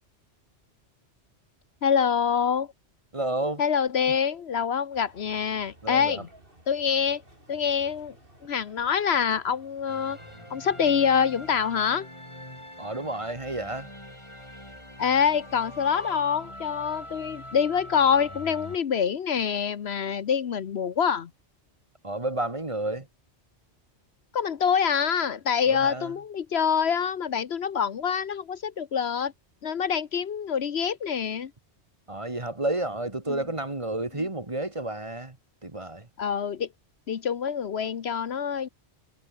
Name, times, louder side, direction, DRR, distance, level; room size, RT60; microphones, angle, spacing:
voice 1, 1.8-2.7 3.6-6.3 6.7-7.2 7.5-8.1 8.4-10.2 10.5-12.1 15.0-21.3 24.3-29.3 29.6-31.5 33.3-33.4 36.2-36.7 37.1-38.7, left 7 dB, 65° left, 1.1 m, -25 dB
voice 2, 3.1-3.6 5.8-6.3 12.8-13.9 22.0-23.1 25.7-26.1 32.1-35.4 35.6-36.1, right 2 dB, 30° right, 2.0 m, -31 dB
sound 1, 4.9-11.8, right 1 dB, 50° right, 7.9 m, -55 dB
sound 2, 9.9-18.8, left 1 dB, 25° left, 7.8 m, -43 dB
omnidirectional pair, 1.2 m